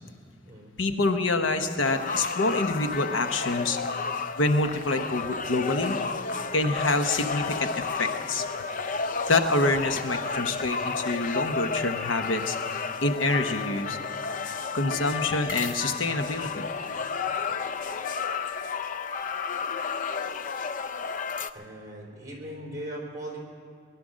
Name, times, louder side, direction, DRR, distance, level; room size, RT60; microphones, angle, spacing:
voice 1, 0.8-3.8 4.4-6.0 6.5-8.4 9.3-12.6 13.0-14.0 14.7-16.7, left 2 dB, 90° left, 7 dB, 1.0 m, -26 dB
sound 1, 1.8-21.5, left 5 dB, 45° left, 0.4 m, -32 dB
voice 2, 21.5-23.4, right 1 dB, 20° right, -2 dB, 3.8 m, -39 dB
20.0 x 11.5 x 6.3 m, 2.4 s
head